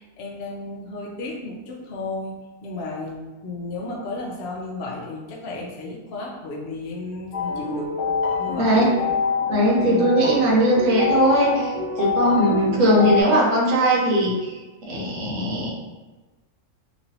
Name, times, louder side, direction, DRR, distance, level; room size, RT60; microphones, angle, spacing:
voice 1, 0.0-2.3 2.6-7.9 8.4-8.9 9.7-10.5, left 2 dB, 65° left, -3 dB, 0.5 m, -33 dB
sound 1, 7.3-13.2, left 5 dB, 85° left, 1.3 m, -26 dB
voice 2, 9.5-14.6 14.9-15.7, right 1 dB, 60° right, -3 dB, 1.1 m, -19 dB
3.0 x 2.6 x 2.7 m, 1.2 s
omnidirectional pair, 1.6 m